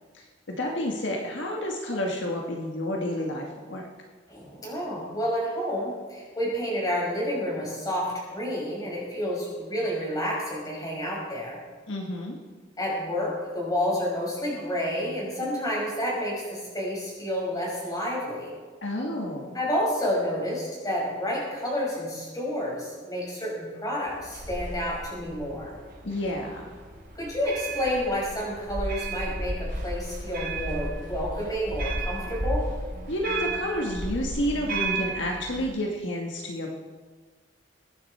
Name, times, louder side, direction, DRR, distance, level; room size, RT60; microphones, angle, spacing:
voice 1, 0.1-3.9 11.9-12.4 18.8-19.6 26.0-26.8 33.1-36.7, left 1 dB, 70° left, 0 dB, 1.7 m, -30 dB
voice 2, 4.3-11.6 12.8-18.5 19.5-25.7 27.2-32.6, equal, 20° left, -4 dB, 5.4 m, -30 dB
sound 1, 24.1-35.6, right 2 dB, 50° right, 4.1 m, -33 dB
22.5 x 10.0 x 4.3 m, 1.5 s
head